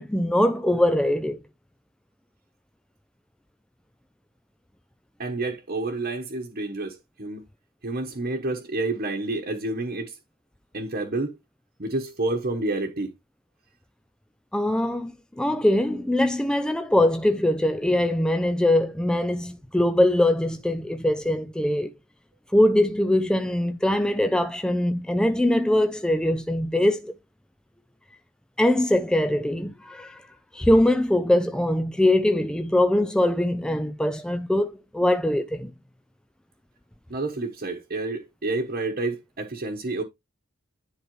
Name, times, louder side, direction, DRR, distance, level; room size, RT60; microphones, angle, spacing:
voice 1, 0.0-1.4 14.5-21.9 22.5-27.1 28.6-30.2 30.5-35.7, left 1 dB, 5° left, 0.3 m, -22 dB
voice 2, 5.2-7.4 7.8-10.2 10.7-11.4 11.8-13.1 37.1-40.0, right 2 dB, 45° right, 1.1 m, -29 dB
10.5 x 4.5 x 3.1 m
head